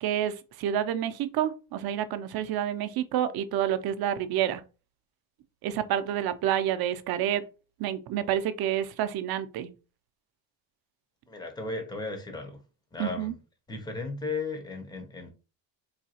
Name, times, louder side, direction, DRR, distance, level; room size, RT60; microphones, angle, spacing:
voice 1, 0.0-4.6 5.6-7.4 7.8-9.7 13.0-13.3, right 10 dB, 55° right, 0.5 m, -28 dB
voice 2, 11.3-12.6 12.9-13.3 13.7-15.3, left 3 dB, 10° left, 0.5 m, -35 dB
4.0 x 2.7 x 2.8 m
cardioid pair, 180°, 45 cm